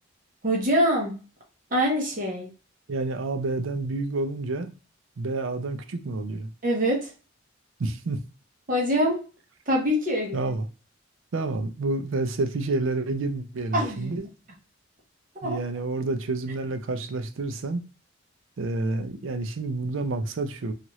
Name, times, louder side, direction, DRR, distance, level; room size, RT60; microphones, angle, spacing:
voice 1, 0.4-1.1 1.7-2.5 6.6-7.1 8.7-9.2 9.7-10.5 13.7-14.1 15.3-15.6, equal, 40° right, 0.9 m, -24 dB
voice 2, 2.9-4.7 5.2-6.5 7.8-8.2 10.3-10.7 11.3-14.3 15.4-17.8 18.6-20.7, right 3 dB, 70° right, 0.5 m, -29 dB
2.8 x 2.4 x 3.0 m
head